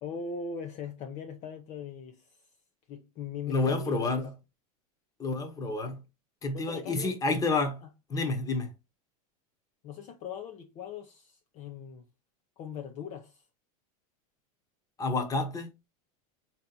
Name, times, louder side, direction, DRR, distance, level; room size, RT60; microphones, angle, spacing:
voice 1, 0.0-2.4 2.9-4.2 6.4-7.2 7.8-7.9 9.8-12.1 12.6-13.4, left 6 dB, 40° left, 0.7 m, -40 dB
voice 2, 3.5-4.2 5.2-6.0 6.4-7.8 8.1-8.7 15.0-15.7, left 3 dB, 20° left, 1.1 m, -29 dB
4.2 x 3.0 x 3.9 m
supercardioid pair, 130°, 19 cm